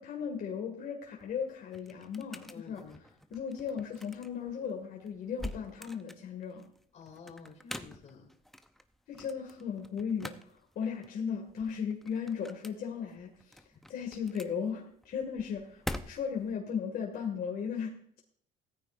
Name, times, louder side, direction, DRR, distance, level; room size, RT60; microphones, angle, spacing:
voice 1, 0.0-2.8 3.3-6.6 9.1-13.6 13.9-18.2, left 7 dB, 60° left, 0 dB, 2.2 m, -36 dB
sound 1, 1.0-16.5, left 1 dB, ahead, 0.7 m, -47 dB
voice 2, 2.5-3.0 6.9-8.3, left 5 dB, 45° left, 4 dB, 2.8 m, -50 dB
16.5 x 14.0 x 2.6 m, 0.62 s
cardioid pair, 110°, 17 cm